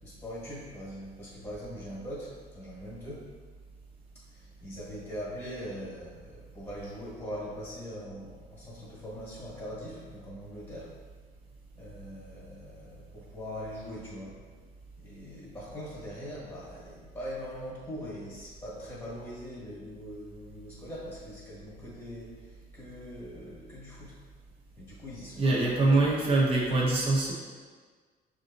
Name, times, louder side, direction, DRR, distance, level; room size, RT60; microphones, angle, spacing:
voice 1, 0.0-3.3 4.1-11.0 11.7-14.4 15.0-24.2 24.8-26.1, equal, 10° left, -6 dB, 1.5 m, -42 dB
voice 2, 25.4-27.3, right 2 dB, 35° right, -4 dB, 1.1 m, -24 dB
6.1 x 2.6 x 2.6 m, 1.5 s
cardioid pair, 110°, 17 cm